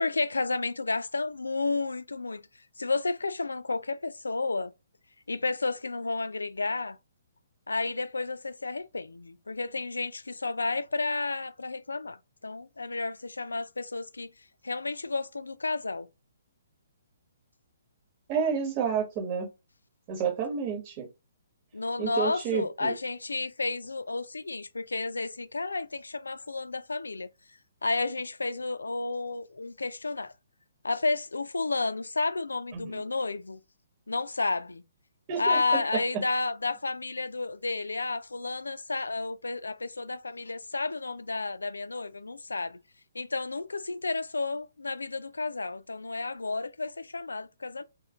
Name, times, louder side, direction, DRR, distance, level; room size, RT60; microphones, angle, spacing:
voice 1, 0.0-2.4 2.8-4.7 5.3-7.0 7.7-12.2 12.4-14.3 14.6-16.1 21.7-27.3 27.8-30.3 30.8-33.6 34.1-34.8 35.4-42.8 43.1-47.8, left 3 dB, 80° left, 0.3 m, -31 dB
voice 2, 18.3-19.5 20.1-21.1 22.0-22.9 32.7-33.0 35.3-35.8, right 7 dB, 30° right, 1.2 m, -30 dB
3.0 x 2.3 x 3.6 m
figure-of-eight pair, 130°, 0 cm